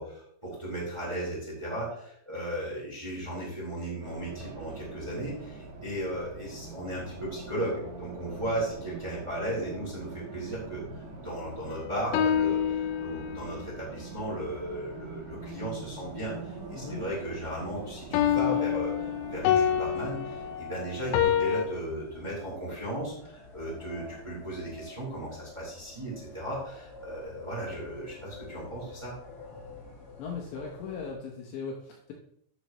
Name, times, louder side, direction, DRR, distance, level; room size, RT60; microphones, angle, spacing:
voice 1, 0.0-10.8 11.2-29.1, right 1 dB, 5° right, -6 dB, 3.3 m, -36 dB
Race car auto racing, 4.0-20.6, right 4 dB, 90° right, 1.6 m, -44 dB
sound 1, 11.7-13.6 18.1-21.7, left 9 dB, 90° left, 3.6 m, -27 dB
sound 2, 15.9-31.1, left 1 dB, 40° left, 1.8 m, -49 dB
voice 2, 30.2-32.1, left 5 dB, 75° left, 0 dB, 2.9 m, -38 dB
14.0 x 6.8 x 3.1 m, 0.69 s
omnidirectional pair, 6.0 m